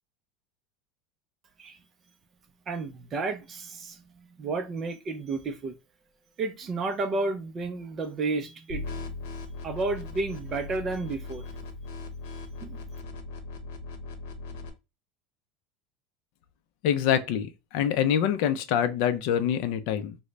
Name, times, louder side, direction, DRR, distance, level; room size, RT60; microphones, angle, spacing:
voice 1, 2.7-5.7 6.4-9.0 9.6-11.4 12.6-12.8, right 3 dB, 25° right, 0.4 m, -32 dB
sound 1, 8.7-14.7, left 3 dB, 80° left, 0.7 m, -39 dB
voice 2, 16.8-20.2, left 9 dB, 50° left, 0.4 m, -25 dB
3.7 x 2.0 x 3.2 m
cardioid pair, 175°, 0 cm